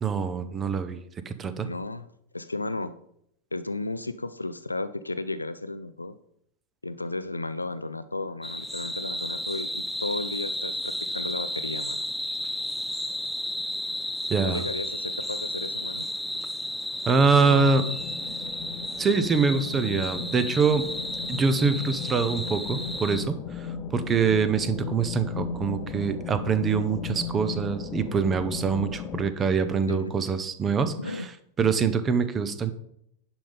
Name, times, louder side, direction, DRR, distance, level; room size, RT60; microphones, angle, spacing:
voice 1, 0.0-1.7 14.3-14.6 17.1-17.8 19.0-20.9 21.3-31.2 31.6-32.7, right 5 dB, 20° right, 12 dB, 0.9 m, -24 dB
voice 2, 1.6-2.1 2.3-3.0 3.5-6.2 6.8-12.1 14.4-16.1 17.3-18.0 29.9-30.1 31.0-31.3 31.6-31.7, left 2 dB, 80° left, 13 dB, 0.4 m, -34 dB
sound 1, 8.4-23.2, left 1 dB, ahead, 0.5 m, -33 dB
sound 2, 17.9-29.2, left 5 dB, 30° left, 1.1 m, -36 dB
10.5 x 5.1 x 5.6 m, 0.73 s
figure-of-eight pair, 90°, 0 cm